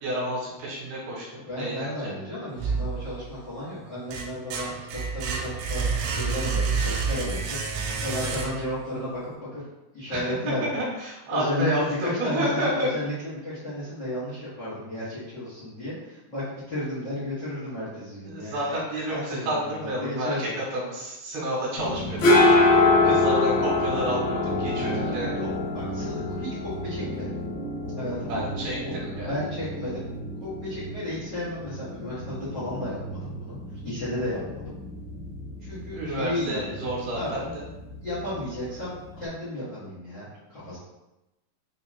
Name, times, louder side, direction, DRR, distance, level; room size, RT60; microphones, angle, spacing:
voice 1, 0.0-2.1 10.1-12.9 18.2-22.2 23.0-25.4 28.3-29.3 35.9-37.6, right 1 dB, 75° right, -4 dB, 2.8 m, -30 dB
voice 2, 1.3-9.6 9.9-10.6 11.3-18.8 19.1-20.6 24.8-27.3 28.0-30.0 30.4-33.6 33.8-34.6 35.6-36.9 37.1-37.4 38.0-40.8, left 1 dB, 90° left, -11 dB, 0.9 m, -33 dB
sound 1, 2.6-3.4 3.8-8.9, right 5 dB, 90° right, 2.7 m, -29 dB
sound 2, 21.8-39.3, left 2 dB, 70° left, 2.6 m, -26 dB
6.8 x 2.8 x 2.3 m, 0.98 s
omnidirectional pair, 4.7 m